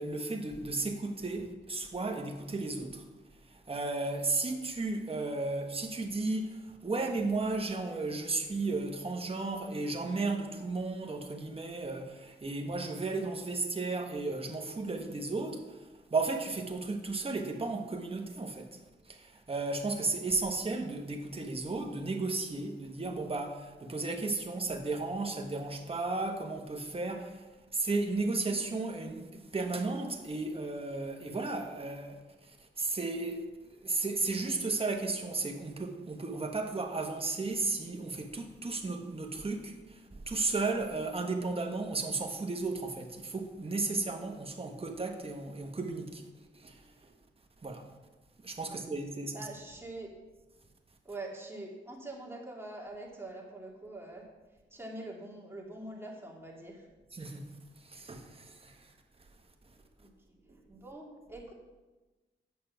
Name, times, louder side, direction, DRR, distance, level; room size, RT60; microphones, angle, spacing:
voice 1, 0.0-3.0 3.5-18.7 19.1-27.4 27.7-33.4 33.8-46.3 46.5-47.1 47.6-47.8 48.4-49.5 57.1-57.5 57.8-58.9, right 3 dB, 30° right, 3 dB, 1.3 m, -34 dB
voice 2, 49.3-50.1 51.0-54.2 54.7-56.9 60.0-60.1 60.7-61.5, right 2 dB, 10° right, -2 dB, 2.5 m, -44 dB
8.6 x 6.5 x 5.9 m, 1.2 s
cardioid pair, 80°, 20 cm